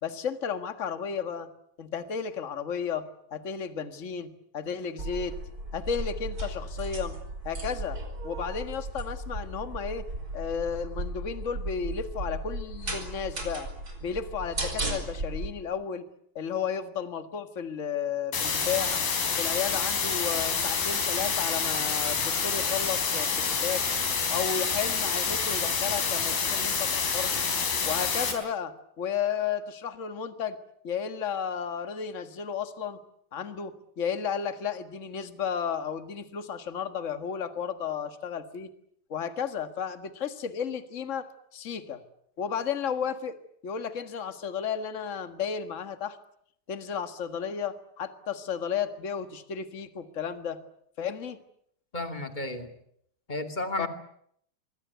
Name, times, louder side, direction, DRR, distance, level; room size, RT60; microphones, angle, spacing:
voice 1, 0.0-1.5 1.8-5.4 5.7-7.2 7.4-8.0 8.2-10.0 10.3-13.7 14.0-16.1 16.3-19.0 19.4-23.8 24.3-27.3 27.8-30.6 30.8-33.0 33.3-38.7 39.1-42.0 42.4-43.4 43.6-46.2 46.7-50.6 51.0-51.4 53.8-53.9, left 7 dB, 50° left, 9 dB, 0.9 m, -33 dB
sound 1, 5.0-15.5, right 1 dB, 25° right, 5.4 m, -35 dB
sound 2, 18.3-28.3, left 5 dB, 80° left, 5.9 m, -28 dB
voice 2, 51.9-52.7 53.3-53.9, left 2 dB, 15° left, 6 dB, 2.0 m, -32 dB
26.0 x 23.0 x 8.2 m, 0.69 s
omnidirectional pair, 4.1 m